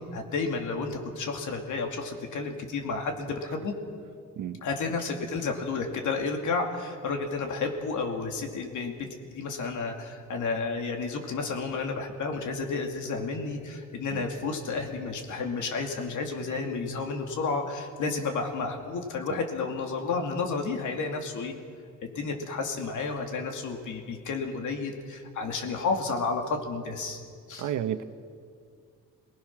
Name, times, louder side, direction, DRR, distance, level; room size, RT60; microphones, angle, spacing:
voice 1, 0.0-3.7 4.6-21.5 22.1-27.2 27.5-27.7, left 4 dB, 70° left, 3 dB, 2.6 m, -31 dB
voice 2, 27.6-28.0, right 10 dB, 75° right, 10 dB, 1.1 m, -31 dB
27.0 x 19.0 x 6.0 m, 2.2 s
cardioid pair, 160°, 31 cm